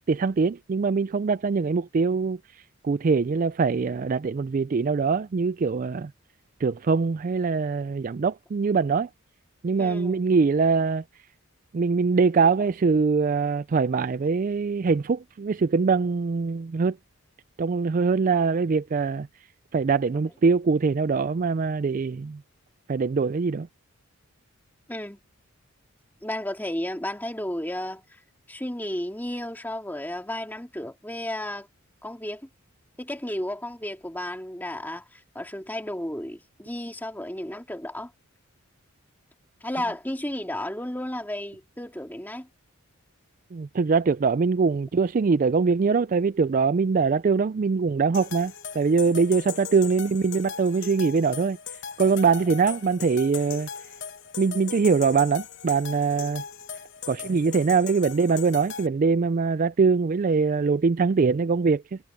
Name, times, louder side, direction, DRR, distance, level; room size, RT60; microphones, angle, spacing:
voice 1, 0.1-2.4 2.8-6.1 6.6-9.1 9.6-11.0 11.7-17.0 17.6-19.3 19.7-22.4 22.9-23.7 43.5-51.6 52.0-53.7 54.4-56.4 57.1-62.0, right 4 dB, 35° right, 0.3 m, -23 dB
voice 2, 9.8-10.2 24.9-25.2 26.2-28.2 28.5-31.7 32.0-32.5 33.0-38.1 39.6-42.5, left 1 dB, 10° left, 2.3 m, -33 dB
sound 1, 48.1-58.9, left 7 dB, 55° left, 1.2 m, -39 dB
head